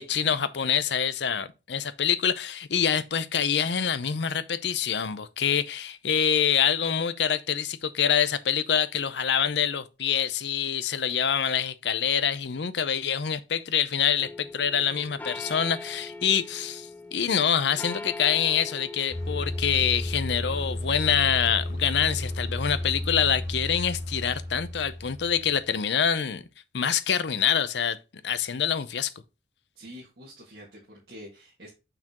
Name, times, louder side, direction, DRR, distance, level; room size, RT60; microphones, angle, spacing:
voice 1, 0.0-26.4 26.7-28.0 28.2-29.1, left 8 dB, 70° left, 0.6 m, -26 dB
sound 1, 14.2-23.0, left 2 dB, 10° left, 0.3 m, -42 dB
sound 2, 19.1-25.7, left 1 dB, 20° right, 1.8 m, -33 dB
voice 2, 29.8-31.7, equal, 60° right, 1.9 m, -46 dB
6.7 x 6.0 x 3.0 m
head